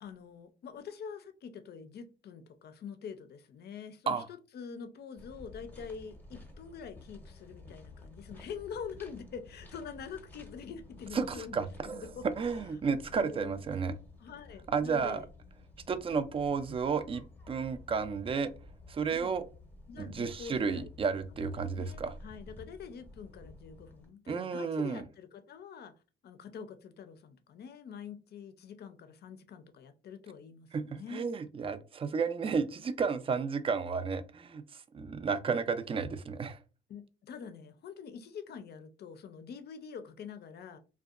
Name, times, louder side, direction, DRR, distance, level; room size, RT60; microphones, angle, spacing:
voice 1, 0.0-12.3 13.1-13.6 14.2-15.3 19.1-19.3 19.9-20.9 21.7-25.9 26.2-31.3 36.9-40.8, left 6 dB, 55° left, 0.5 m, -45 dB
sound 1, 5.2-24.1, left 2 dB, 10° left, 0.7 m, -52 dB
voice 2, 11.1-12.1 12.4-14.0 14.7-15.2 15.9-18.5 18.9-19.4 20.0-22.1 24.3-25.0 30.7-36.6, right 5 dB, 30° right, 0.3 m, -32 dB
2.6 x 2.2 x 2.3 m
cardioid pair, 90°, 20 cm